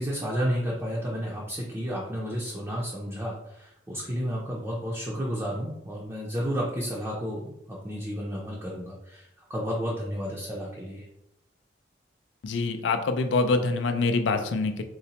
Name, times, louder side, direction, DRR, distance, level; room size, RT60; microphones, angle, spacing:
voice 1, 0.0-11.1, equal, 15° right, -4 dB, 0.5 m, -32 dB
voice 2, 12.4-14.8, left 3 dB, 80° left, 7 dB, 0.4 m, -25 dB
3.9 x 2.1 x 2.8 m, 0.83 s
head